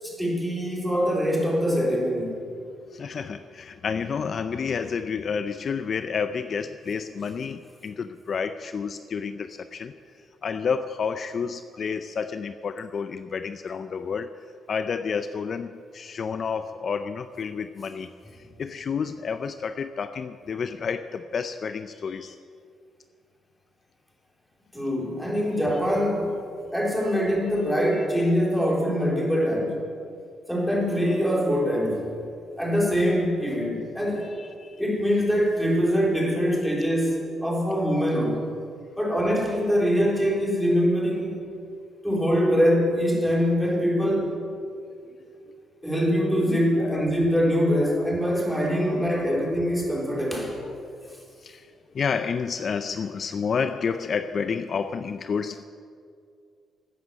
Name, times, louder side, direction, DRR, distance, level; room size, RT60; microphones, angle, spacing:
voice 1, 0.0-2.4 24.7-26.4 26.7-29.8 30.5-32.2 32.6-34.3 34.8-38.4 39.0-41.4 42.0-44.3 45.8-50.6, equal, ahead, -3 dB, 3.9 m, -23 dB
voice 2, 2.9-14.3 14.7-22.4 33.7-33.8 34.2-34.8 39.4-39.5 41.4-41.5 45.0-45.2 46.8-47.2 47.8-48.1 49.0-49.1 50.2-55.7, left 6 dB, 50° left, 10 dB, 0.5 m, -30 dB
12.5 x 9.3 x 8.3 m, 2.3 s
cardioid pair, 90°, 0 cm